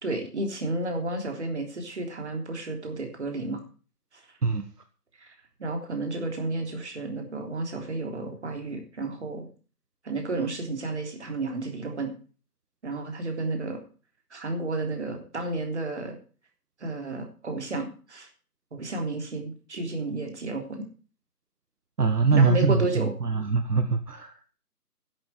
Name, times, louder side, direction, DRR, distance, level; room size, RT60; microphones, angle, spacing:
voice 1, 0.0-3.6 4.1-4.2 5.2-9.5 10.0-12.1 12.8-13.8 14.3-16.2 16.8-18.3 18.7-20.8 22.3-23.1, right 2 dB, 45° right, 4 dB, 3.4 m, -32 dB
voice 2, 22.0-24.5, right 4 dB, 75° right, 8 dB, 1.6 m, -23 dB
11.0 x 7.6 x 8.4 m, 0.38 s
figure-of-eight pair, 165°, 48 cm